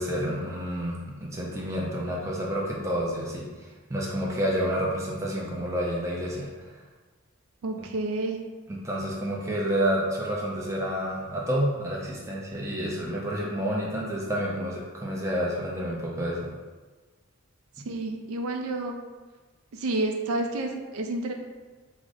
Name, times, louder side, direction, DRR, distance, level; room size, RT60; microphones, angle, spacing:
voice 1, 0.0-6.5 8.7-16.5, equal, 15° right, -4 dB, 0.4 m, -29 dB
voice 2, 7.6-8.4 17.8-19.0 19.7-21.3, right 2 dB, 75° right, 3 dB, 0.4 m, -29 dB
4.9 x 2.0 x 2.5 m, 1.3 s
head